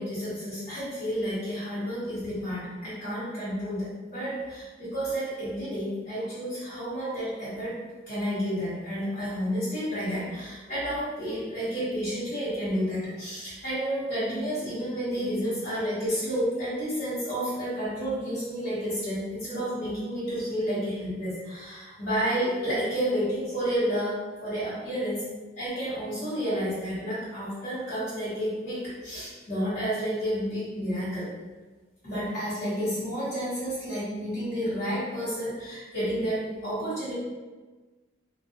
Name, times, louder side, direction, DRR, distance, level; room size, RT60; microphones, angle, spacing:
voice 1, 0.0-7.8 8.1-25.2 25.6-31.3 32.0-37.1, equal, 50° left, -12 dB, 1.3 m, -30 dB
3.0 x 2.6 x 2.9 m, 1.3 s
head